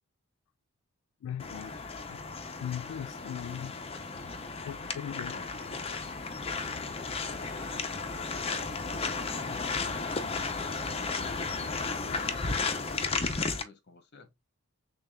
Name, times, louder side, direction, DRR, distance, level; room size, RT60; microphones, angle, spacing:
voice 1, 1.2-2.3 2.6-3.7 4.6-5.4, left 9 dB, 90° left, 0.3 m, -39 dB
sound 1, 1.4-13.6, left 4 dB, 25° left, 0.5 m, -34 dB
voice 2, 5.2-6.1 6.7-11.6 12.0-14.4, left 3 dB, 50° left, 1.1 m, -53 dB
6.6 x 2.3 x 2.2 m
head